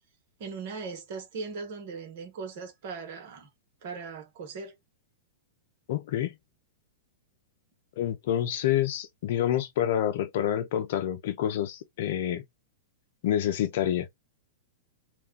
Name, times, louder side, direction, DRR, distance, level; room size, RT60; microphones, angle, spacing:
voice 1, 0.4-3.5 3.8-4.7, right 4 dB, 60° right, 1.1 m, -39 dB
voice 2, 5.9-6.3 8.0-12.4 13.2-14.1, left 11 dB, 60° left, 0.6 m, -28 dB
2.5 x 2.2 x 3.6 m
hypercardioid pair, 120°, 0 cm